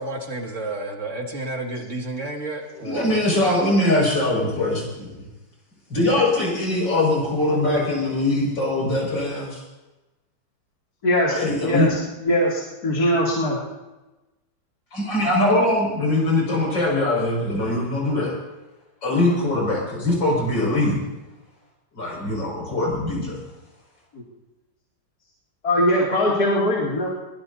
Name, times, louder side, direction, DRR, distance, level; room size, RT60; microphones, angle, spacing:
voice 1, 0.0-3.5, right 2 dB, 40° right, 1 dB, 2.6 m, -31 dB
voice 2, 2.8-5.3 5.9-9.6 11.3-11.9 14.9-18.3 19.0-21.0 21.9-23.4, left 2 dB, 80° left, -2 dB, 6.8 m, -22 dB
voice 3, 11.0-11.3 11.6-11.9 12.2-13.6 25.6-27.1, equal, 55° left, -5 dB, 3.3 m, -21 dB
22.5 x 20.0 x 2.8 m, 1.1 s
omnidirectional pair, 2.0 m